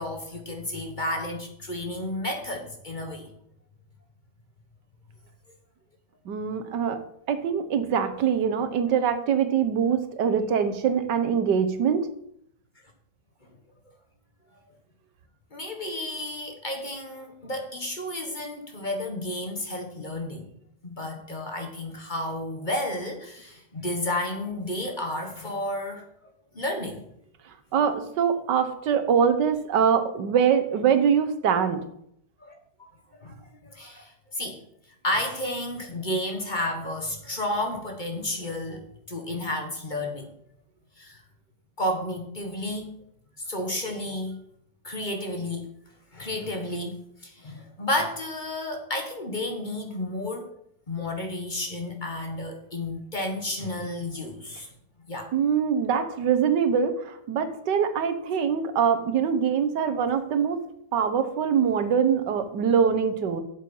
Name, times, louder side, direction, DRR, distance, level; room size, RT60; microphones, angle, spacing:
voice 1, 0.0-3.3 15.5-20.5 20.8-27.0 32.4-32.5 33.2-33.3 33.6-34.6 35.0-40.3 41.0-41.2 41.8-42.9 43.4-44.4 44.8-45.7 46.1-50.5 50.9-54.7 55.1-55.3, left 1 dB, 30° left, 3 dB, 1.4 m, -32 dB
voice 2, 6.3-7.0 7.3-12.1 27.7-31.8 55.3-60.6 60.9-63.4, right 7 dB, 85° right, 8 dB, 1.6 m, -23 dB
8.0 x 7.5 x 5.4 m, 0.71 s
omnidirectional pair, 1.8 m